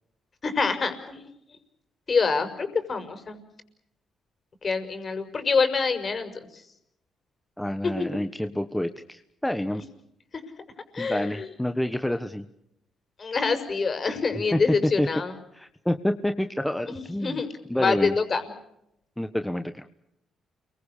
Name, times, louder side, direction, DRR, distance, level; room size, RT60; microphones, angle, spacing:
voice 1, 0.4-1.3 2.1-3.4 4.6-6.3 7.8-7.9 10.9-11.5 13.2-15.3 16.9-17.5 17.7-18.4, left 4 dB, 40° left, 8 dB, 6.0 m, -26 dB
voice 2, 7.6-9.8 11.0-12.4 14.5-15.1 15.5-17.4 17.7-18.1 19.2-19.8, left 1 dB, 5° left, 8 dB, 1.4 m, -28 dB
29.5 x 23.5 x 6.8 m, 0.81 s
cardioid pair, 90°, 0 cm